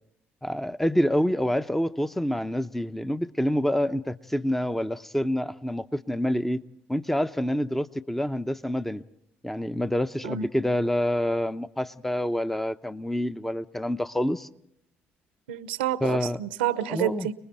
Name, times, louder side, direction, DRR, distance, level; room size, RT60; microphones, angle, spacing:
voice 1, 0.4-6.6 6.9-9.0 9.4-14.5 16.0-16.4 16.9-17.3, equal, 5° left, 0.8 m, -27 dB
voice 2, 15.5-17.3, right 11 dB, 85° right, 0.8 m, -29 dB
29.5 x 20.5 x 4.4 m
hypercardioid pair, 55°, 6 cm